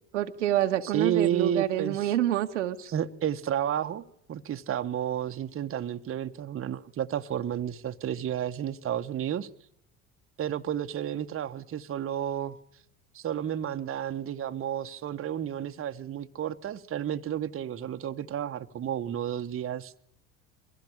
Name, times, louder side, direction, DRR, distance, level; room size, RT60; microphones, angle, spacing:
voice 1, 0.1-2.8, right 12 dB, 85° right, 1.5 m, -27 dB
voice 2, 0.8-2.1 2.8-4.0 4.3-9.5 10.4-12.6 13.1-20.0, right 10 dB, 40° right, 1.4 m, -31 dB
23.5 x 16.5 x 8.8 m
hypercardioid pair, 75°, 35 cm